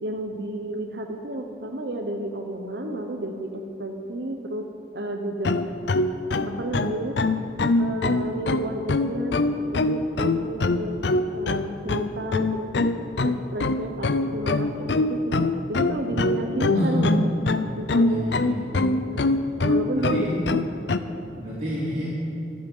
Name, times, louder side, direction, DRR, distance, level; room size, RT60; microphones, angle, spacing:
voice 1, 0.0-4.7 4.9-5.5 6.4-7.2 7.8-11.0 11.3-12.7 13.2-15.3 15.7-17.2 17.8-18.4 19.1-19.3 19.6-20.4 21.2-21.3, right 1 dB, 70° right, 3 dB, 1.0 m, -31 dB
sound 1, 5.4-21.0, left 2 dB, 75° left, 0.6 m, -23 dB
voice 2, 16.1-16.4 16.7-17.0 18.1-18.6 19.9-20.3 21.3-22.1, equal, 40° right, -9 dB, 3.1 m, -29 dB
25.0 x 8.7 x 5.5 m, 2.7 s
head